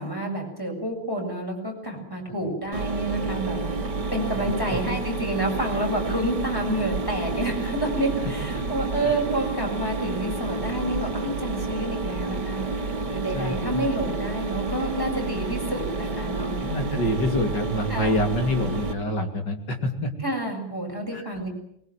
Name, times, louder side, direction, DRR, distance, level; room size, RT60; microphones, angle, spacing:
voice 1, 0.0-3.7 4.1-12.6 13.0-16.5 16.9-17.2 17.9-18.2 20.2-21.5, right 1 dB, 10° left, 1 dB, 7.1 m, -29 dB
Mechanisms, 2.7-18.9, right 3 dB, 50° right, 2.6 m, -30 dB
voice 2, 4.3-4.8 8.6-8.7 13.3-13.9 16.6-20.1 21.1-21.2, left 1 dB, 50° left, 5 dB, 3.5 m, -27 dB
23.5 x 21.5 x 9.2 m, 0.72 s
omnidirectional pair, 2.4 m